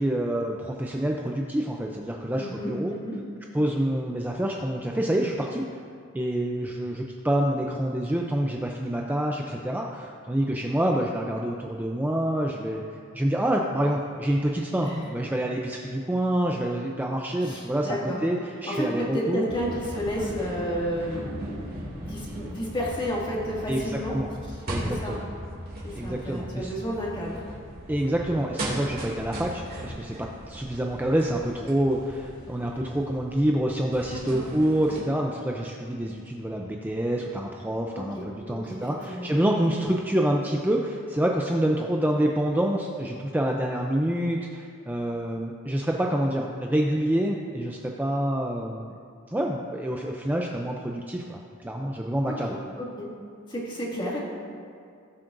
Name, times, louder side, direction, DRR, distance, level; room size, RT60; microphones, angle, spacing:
voice 1, 0.0-3.0 3.5-5.7 6.1-12.8 13.1-19.5 23.7-24.3 24.7-25.2 25.9-26.7 27.9-48.9 49.3-52.6, right 1 dB, 10° right, 0 dB, 0.5 m, -27 dB
voice 2, 2.4-3.2 14.8-15.0 17.4-18.2 18.7-24.2 24.5-25.2 25.8-27.4 34.1-34.4 37.9-38.8 39.1-39.3 52.3-53.1 53.5-54.2, equal, 25° left, -5 dB, 2.2 m, -32 dB
sound 1, 19.5-35.0, right 1 dB, 45° right, 2.5 m, -38 dB
17.5 x 7.6 x 2.6 m, 2.3 s
head